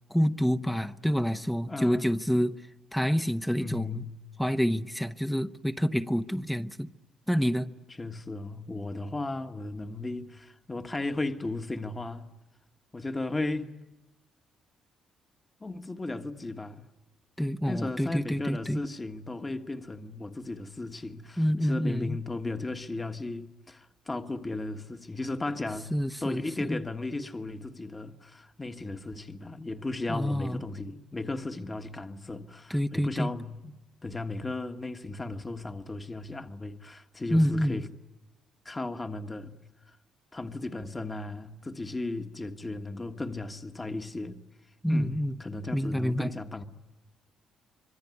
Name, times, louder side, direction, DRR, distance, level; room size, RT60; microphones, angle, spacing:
voice 1, 0.1-2.6 2.9-4.0 4.4-6.9 7.3-7.7 17.4-18.8 21.4-22.2 25.9-26.8 30.1-30.6 32.7-33.3 37.3-37.8 44.8-45.4 45.7-46.3, equal, 5° left, 0.9 m, -27 dB
voice 2, 1.7-2.1 3.6-4.2 7.9-12.3 12.9-13.7 15.6-16.8 17.7-25.9 26.2-33.7 34.0-37.9 38.6-39.5 39.9-40.0 40.3-44.4 44.9-46.6, left 2 dB, 20° left, 1.5 m, -35 dB
25.5 x 23.0 x 9.6 m
cardioid pair, 90°, 0 cm